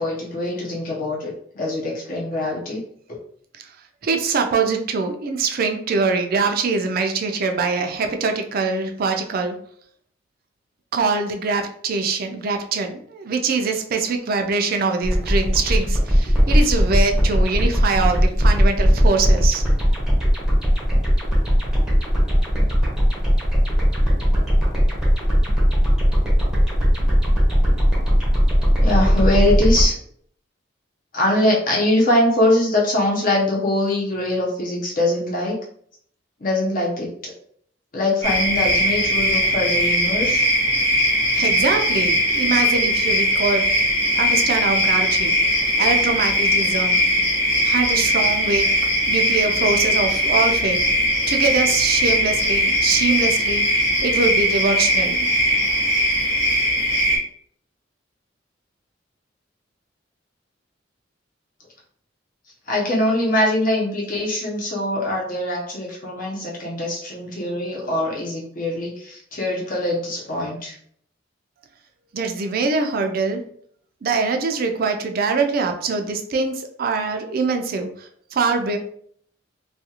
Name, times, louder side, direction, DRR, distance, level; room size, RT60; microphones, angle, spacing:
voice 1, 0.0-2.8 28.8-30.0 31.1-35.5 36.4-37.3 37.9-40.4 62.7-70.8, left 1 dB, 50° left, -2 dB, 0.8 m, -22 dB
voice 2, 4.0-9.6 10.9-19.6 41.3-43.7 44.1-47.0 47.6-48.7 49.1-50.8 51.3-55.3 72.1-73.4 74.0-78.8, right 4 dB, 50° right, 5 dB, 0.4 m, -23 dB
sound 1, 15.0-29.9, equal, 5° right, 0.7 m, -18 dB
sound 2, 38.2-57.2, equal, 15° left, 1.0 m, -20 dB
2.4 x 2.3 x 2.8 m, 0.62 s
head